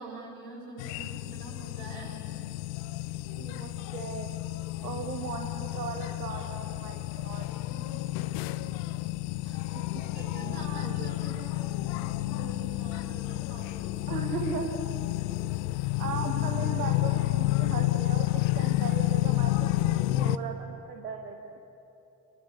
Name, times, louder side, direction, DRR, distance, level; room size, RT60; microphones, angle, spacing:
voice 1, 0.0-2.4 7.7-8.0 9.4-14.4, right 3 dB, 55° right, -2 dB, 7.6 m, -46 dB
sound 1, 0.8-20.4, left 18 dB, 65° left, 0.8 m, -30 dB
voice 2, 3.3-4.4 4.8-7.5 9.7-10.0 10.3-11.4 11.7-11.8 14.1-14.8 16.0-21.5, right 6 dB, 85° right, 4 dB, 1.1 m, -38 dB
27.0 x 20.5 x 8.4 m, 2.9 s
figure-of-eight pair, 40°, 46 cm